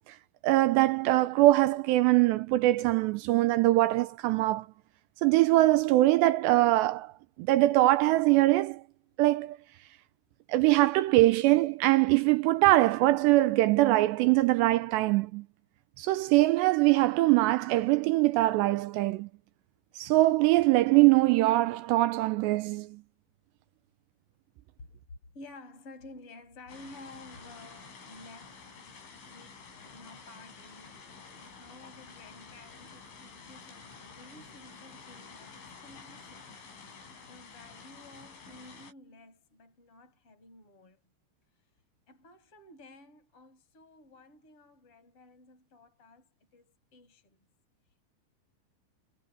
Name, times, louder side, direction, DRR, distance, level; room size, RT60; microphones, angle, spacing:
voice 1, 0.4-4.7 5.2-7.1 7.4-8.8 9.2-9.6 10.5-15.5 16.0-19.3 20.0-23.0, right 17 dB, 85° right, 2.6 m, -23 dB
voice 2, 25.3-29.0 29.3-29.6 29.9-36.7 37.2-41.0 42.1-47.4, left 2 dB, 30° left, 7.2 m, -53 dB
sound 1, 26.7-38.9, left 5 dB, 80° left, 9.5 m, -50 dB
omnidirectional pair, 5.4 m